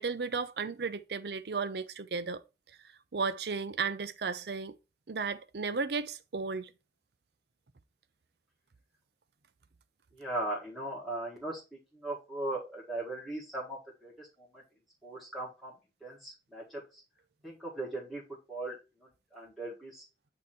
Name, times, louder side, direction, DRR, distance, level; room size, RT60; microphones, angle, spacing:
voice 1, 0.0-2.4 3.1-4.7 5.1-6.7, right 4 dB, 65° right, 0.6 m, -34 dB
voice 2, 10.1-11.6 11.9-14.6 15.0-15.7 16.0-17.0 17.4-18.2 18.5-20.0, right 2 dB, ahead, 1.7 m, -39 dB
8.4 x 3.0 x 4.2 m
head